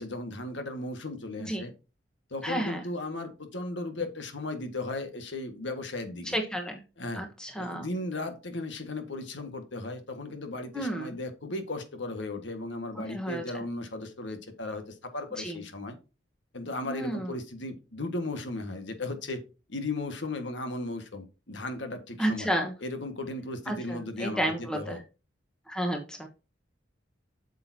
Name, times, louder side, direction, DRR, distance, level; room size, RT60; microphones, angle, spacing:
voice 1, 0.0-1.7 2.3-6.4 7.0-7.3 7.6-16.0 16.5-19.4 19.7-22.5 22.8-25.0, left 2 dB, 70° left, 7 dB, 1.6 m, -36 dB
voice 2, 2.4-2.8 6.3-6.8 7.1-7.9 10.7-11.1 13.1-13.4 15.4-15.6 16.9-17.3 22.2-22.7 23.7-25.0 25.7-26.3, right 1 dB, 5° left, 3 dB, 1.1 m, -31 dB
8.7 x 6.9 x 2.7 m, 0.30 s
head